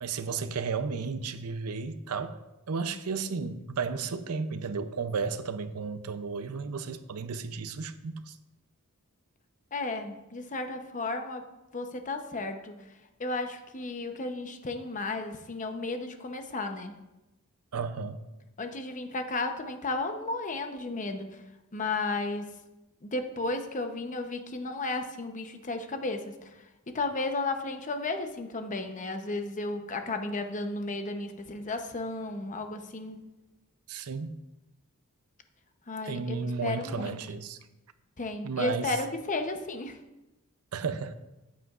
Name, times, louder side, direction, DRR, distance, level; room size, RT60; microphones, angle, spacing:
voice 1, 0.0-2.4 2.7-8.4 17.7-18.2 33.9-34.4 36.0-37.6 38.4-39.0 40.7-41.1, right 5 dB, 90° right, 0.6 m, -33 dB
voice 2, 9.7-11.5 11.7-12.7 13.2-17.0 18.6-21.4 21.7-22.5 23.0-26.6 26.9-33.2 35.9-37.2 38.2-40.0, left 2 dB, 35° left, 0.8 m, -33 dB
14.5 x 8.3 x 2.5 m
head